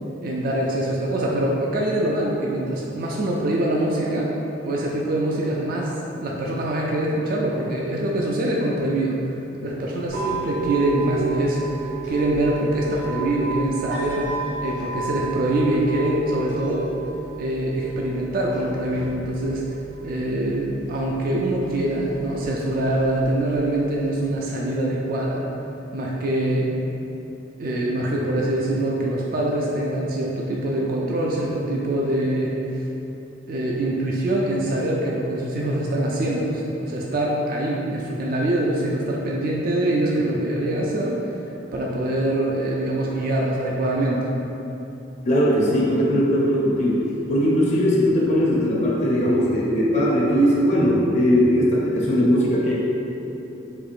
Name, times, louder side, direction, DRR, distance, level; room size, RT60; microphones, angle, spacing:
voice 1, 0.2-4.3 4.6-5.9 6.2-9.2 9.6-14.3 14.6-16.8 17.4-19.6 20.0-25.5 25.9-26.7 27.6-32.9 33.5-41.2 41.7-44.3, right 1 dB, 45° right, -3 dB, 0.3 m, -24 dB
sound 1, 10.1-24.1, right 5 dB, 85° right, 1.3 m, -33 dB
voice 2, 45.3-52.7, equal, 35° left, -5 dB, 0.4 m, -19 dB
4.3 x 2.7 x 2.4 m, 2.9 s
head